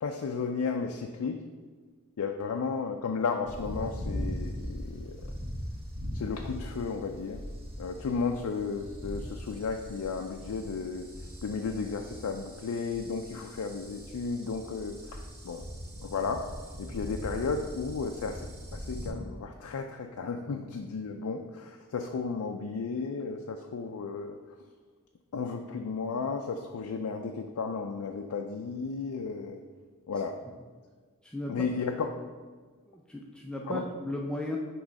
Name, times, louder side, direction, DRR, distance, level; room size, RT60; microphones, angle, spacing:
voice 1, 0.0-1.4 2.2-5.2 6.1-7.4 7.8-11.1 11.4-15.6 16.0-16.5 16.8-24.4 25.3-29.6 30.1-30.4 31.5-32.1 33.7-33.8, left 5 dB, 85° left, 4 dB, 0.4 m, -34 dB
sound 1, 3.5-19.1, equal, 80° right, 1.4 m, -40 dB
voice 2, 32.9-34.6, left 1 dB, 5° left, -2 dB, 0.4 m, -36 dB
6.1 x 3.1 x 5.2 m, 1.5 s
head